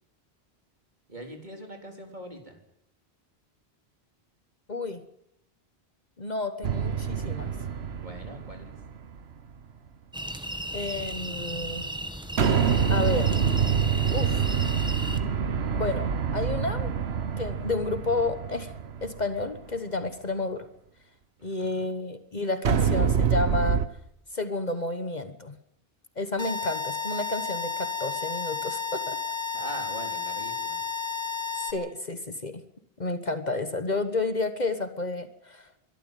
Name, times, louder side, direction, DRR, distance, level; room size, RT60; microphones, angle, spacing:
voice 1, 1.1-2.6 8.0-8.7 21.4-21.9 29.5-30.8, right 1 dB, 45° right, 3 dB, 4.0 m, -42 dB
voice 2, 4.7-5.0 6.2-7.5 10.7-11.9 12.9-13.3 14.1-14.5 15.7-16.9 17.4-18.7 19.0-20.7 21.4-23.8 24.3-25.5 26.2-29.2 31.7-32.6 33.0-35.7, left 2 dB, 45° left, 10 dB, 1.4 m, -31 dB
sound 1, 6.6-9.2 12.4-19.6 22.6-23.8, right 7 dB, 80° right, 1.3 m, -26 dB
sound 2, 10.1-15.2, right 1 dB, 5° right, 1.5 m, -35 dB
sound 3, 26.4-31.7, left 6 dB, 25° left, 3.3 m, -32 dB
23.0 x 13.0 x 9.2 m, 0.76 s
omnidirectional pair, 1.1 m